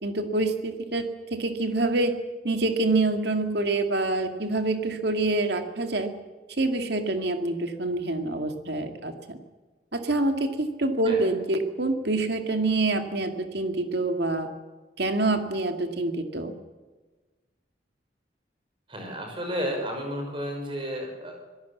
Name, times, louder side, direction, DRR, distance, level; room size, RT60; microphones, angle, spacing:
voice 1, 0.0-2.1 2.4-6.1 6.6-9.4 9.9-14.5 15.0-16.5, right 2 dB, 70° right, 5 dB, 2.2 m, -26 dB
voice 2, 18.9-21.5, equal, 30° right, 3 dB, 5.7 m, -32 dB
25.5 x 17.5 x 7.3 m, 1.3 s
head